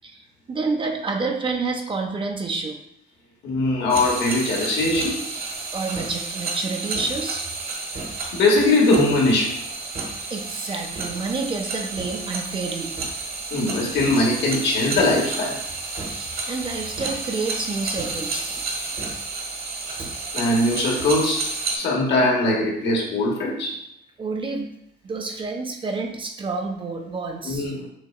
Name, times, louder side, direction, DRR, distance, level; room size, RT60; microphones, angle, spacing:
voice 1, 0.0-2.8 5.7-7.5 10.3-12.9 16.1-18.6 24.2-24.7 25.0-27.7, right 3 dB, 25° right, 3 dB, 0.5 m, -29 dB
voice 2, 3.4-5.3 8.3-9.6 13.5-15.6 20.3-23.8 27.4-27.9, left 2 dB, 70° left, -2 dB, 1.1 m, -21 dB
sound 1, 3.9-21.8, right 3 dB, 55° right, 1.1 m, -31 dB
6.3 x 2.2 x 2.3 m, 0.73 s
cardioid pair, 130°, 19 cm